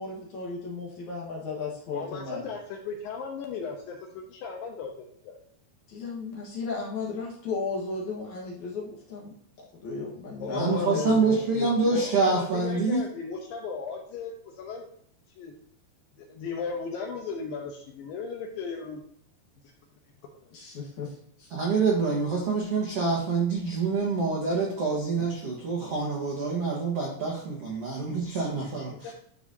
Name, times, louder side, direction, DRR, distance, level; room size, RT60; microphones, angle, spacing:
voice 1, 0.0-2.5 5.9-9.3 9.8-11.7 20.5-21.1 21.4-21.5 28.3-28.7, left 4 dB, 60° left, -4 dB, 2.2 m, -34 dB
voice 2, 1.9-4.9 5.2-5.4 10.4-11.1 11.9-14.9 15.4-15.5 16.2-19.0 29.0-29.1, left 5 dB, 75° left, 2 dB, 2.2 m, -36 dB
voice 3, 10.5-13.0 21.5-29.1, right 4 dB, 70° right, -3 dB, 1.4 m, -26 dB
12.0 x 4.9 x 2.7 m, 0.66 s
omnidirectional pair, 4.8 m